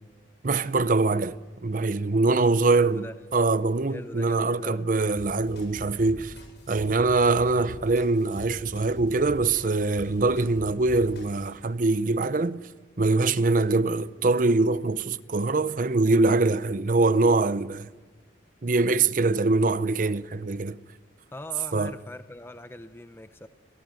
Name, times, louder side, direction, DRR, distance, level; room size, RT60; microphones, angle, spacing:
voice 1, 0.4-3.1 3.3-6.3 6.7-12.6 13.0-17.9 18.6-20.8 21.7-21.9, right 3 dB, 45° right, 0.6 m, -23 dB
voice 2, 2.7-3.2 3.9-4.9 21.3-23.5, left 1 dB, 10° left, 0.6 m, -41 dB
sound 1, 5.2-11.5, equal, 65° left, 7.7 m, -43 dB
23.0 x 17.5 x 9.1 m
head